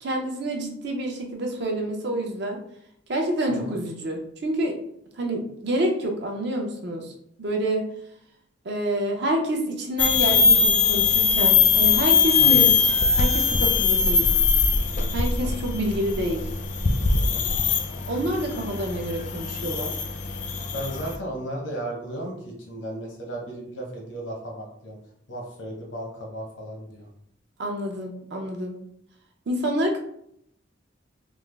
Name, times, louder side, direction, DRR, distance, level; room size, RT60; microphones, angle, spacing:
voice 1, 0.0-2.6 3.1-4.8 5.2-7.1 7.4-7.9 8.6-12.7 13.2-14.3 15.1-16.5 18.1-20.0 27.6-28.8 29.5-30.0, right 1 dB, 65° right, 2 dB, 0.6 m, -27 dB
sound 1, 10.0-21.1, left 6 dB, 45° left, 0.4 m, -21 dB
voice 2, 17.3-17.6 20.7-25.0 25.3-27.1, right 1 dB, 80° left, -1 dB, 0.8 m, -35 dB
3.4 x 2.0 x 3.3 m, 0.72 s
head